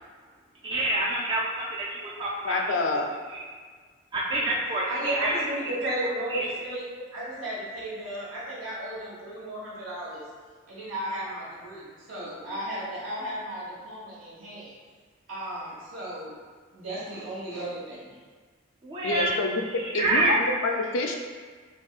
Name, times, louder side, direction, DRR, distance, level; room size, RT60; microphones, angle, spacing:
voice 1, 0.6-2.6 3.3-3.4 4.1-5.3 6.3-6.6 18.8-19.3 19.8-20.4, right 2 dB, 25° right, -5 dB, 0.3 m, -27 dB
voice 2, 2.4-3.1 12.2-12.3 19.0-21.2, left 2 dB, 65° left, 2 dB, 0.4 m, -27 dB
voice 3, 4.9-6.8 7.1-10.2 10.7-14.7 15.3-16.3 16.7-18.1, right 1 dB, 70° right, -7 dB, 1.3 m, -34 dB
5.1 x 2.2 x 2.4 m, 1.6 s
head